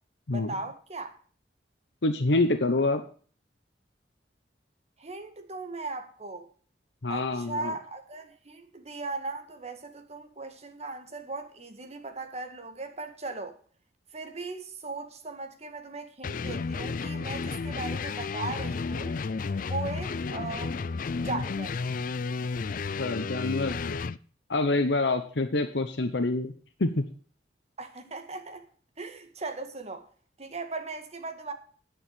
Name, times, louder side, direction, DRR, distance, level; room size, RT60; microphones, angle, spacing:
voice 1, 0.3-1.1 5.0-6.5 7.1-13.6 14.1-19.1 19.6-20.9 21.2-21.7 25.0-25.1 27.8-28.6 29.0-30.0 30.4-31.5, right 3 dB, 40° right, 1.8 m, -38 dB
voice 2, 2.0-3.0 7.0-7.7 23.0-24.0 24.5-26.5 26.8-27.1, left 2 dB, 85° left, 0.9 m, -26 dB
sound 1, 16.2-24.2, left 4 dB, 50° left, 0.4 m, -32 dB
10.0 x 6.6 x 7.6 m
head